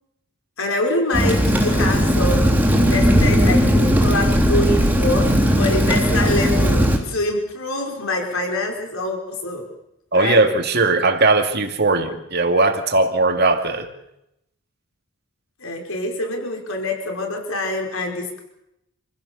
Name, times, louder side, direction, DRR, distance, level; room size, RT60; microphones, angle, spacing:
voice 1, 0.6-2.5 2.7-9.7 10.1-10.4 15.6-18.4, left 1 dB, 65° left, 2 dB, 5.4 m, -25 dB
Rain, 1.1-7.0, equal, 10° right, 3.4 m, -17 dB
voice 2, 10.1-13.9, right 3 dB, 45° right, 6 dB, 2.4 m, -18 dB
28.0 x 16.0 x 7.2 m, 0.84 s
head